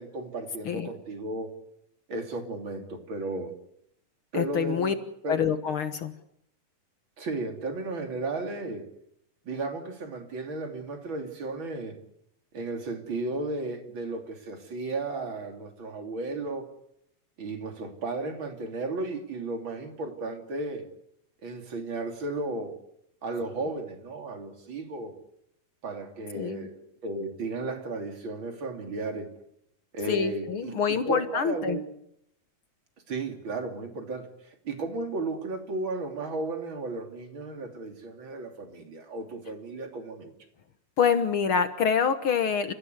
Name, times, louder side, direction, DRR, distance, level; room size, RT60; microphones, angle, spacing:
voice 1, 0.0-1.5 2.1-3.5 4.3-5.0 5.2-5.5 7.2-8.9 9.5-12.0 12.5-16.7 17.4-20.8 21.4-22.7 23.2-25.1 25.8-29.3 29.9-31.9 33.1-40.3, right 3 dB, 35° right, 5 dB, 3.5 m, -34 dB
voice 2, 4.3-4.9 5.3-6.1 26.3-26.7 30.1-31.8 41.0-42.7, left 7 dB, 60° left, 10 dB, 1.5 m, -26 dB
29.5 x 15.5 x 8.1 m, 0.74 s
omnidirectional pair, 3.9 m